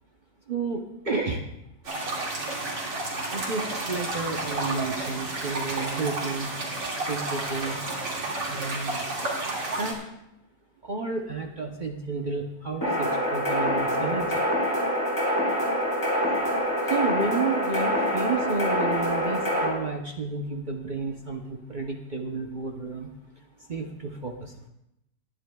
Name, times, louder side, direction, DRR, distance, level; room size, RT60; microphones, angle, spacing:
voice 1, 0.5-1.4 3.3-6.5 7.0-7.8 8.5-9.1 9.8-10.0 10.8-14.4 16.3-16.4 16.8-23.1 23.7-24.7, right 4 dB, 45° right, 2 dB, 0.6 m, -31 dB
sound 1, 1.8-9.9, right 2 dB, 70° right, 2.9 m, -31 dB
sound 2, 12.8-19.7, equal, 10° left, 3.9 m, -25 dB
20.5 x 10.5 x 2.3 m, 0.82 s
omnidirectional pair, 1.9 m